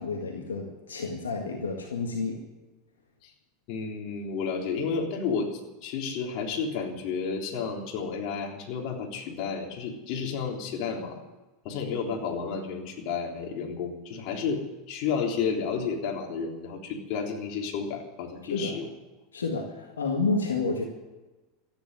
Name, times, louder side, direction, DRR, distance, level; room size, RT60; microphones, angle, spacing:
voice 1, 0.0-2.4 18.5-18.8 19.3-20.8, left 3 dB, 90° left, 1 dB, 2.0 m, -30 dB
voice 2, 3.7-11.2 11.6-18.9, left 5 dB, 55° left, 0 dB, 3.5 m, -31 dB
14.0 x 10.0 x 9.6 m, 1.2 s
hypercardioid pair, 90°, 0 cm